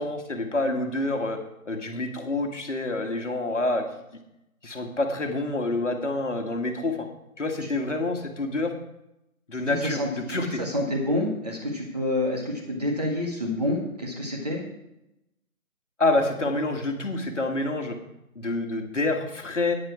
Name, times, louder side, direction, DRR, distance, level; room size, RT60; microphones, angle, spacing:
voice 1, 0.0-1.4 1.6-3.8 4.6-7.1 7.4-8.7 9.5-10.0 10.3-10.6 16.0-18.0 18.3-19.8, left 2 dB, 55° left, 4 dB, 1.7 m, -27 dB
voice 2, 9.5-14.6, left 1 dB, 25° right, 0 dB, 1.8 m, -28 dB
10.5 x 9.6 x 4.8 m, 0.86 s
figure-of-eight pair, 175°, 43 cm